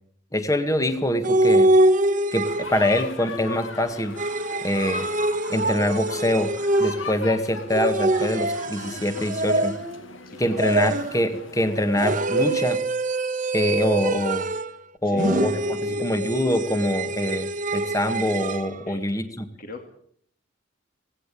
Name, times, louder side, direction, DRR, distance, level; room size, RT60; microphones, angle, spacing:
voice 1, 0.3-1.7 2.3-4.2 4.6-5.1 5.5-6.5 6.8-9.7 10.4-12.8 13.5-14.4 15.0-15.5 15.8-19.5, left 1 dB, 15° left, 9 dB, 1.7 m, -24 dB
sound 1, 1.2-3.0 4.2-7.2 7.7-10.1 10.6-11.3 12.0-14.8 15.2-18.7, right 1 dB, 40° right, 1.4 m, -24 dB
sound 2, 2.4-12.6, left 4 dB, 90° left, 2.4 m, -39 dB
voice 2, 10.2-10.7 15.0-15.4 15.8-16.0 18.8-19.0 19.6-19.9, left 2 dB, 45° left, 5 dB, 2.6 m, -40 dB
18.0 x 17.5 x 8.5 m, 0.63 s
head